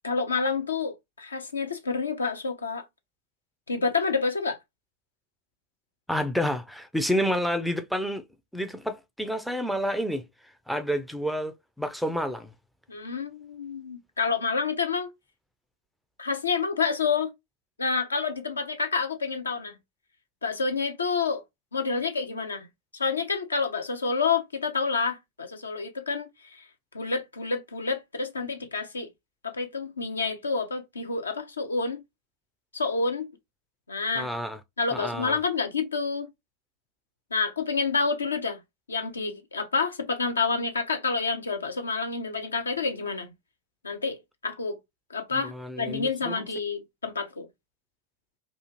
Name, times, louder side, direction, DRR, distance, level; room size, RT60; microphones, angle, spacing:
voice 1, 0.0-2.8 3.7-4.6 12.9-15.1 16.2-17.3 17.8-19.7 20.4-21.4 21.7-22.7 22.9-26.6 26.9-29.1 29.4-32.0 32.7-33.3 33.9-34.3 34.8-36.3 37.3-38.6 38.9-43.3 43.8-44.2 44.4-44.8 45.1-47.5, left 4 dB, 75° left, 0.5 m, -28 dB
voice 2, 6.1-8.2 8.5-10.3 10.7-12.5 34.2-34.6 34.9-35.4 45.3-46.5, equal, ahead, 0.4 m, -29 dB
2.4 x 2.3 x 2.9 m
figure-of-eight pair, 90°, 0 cm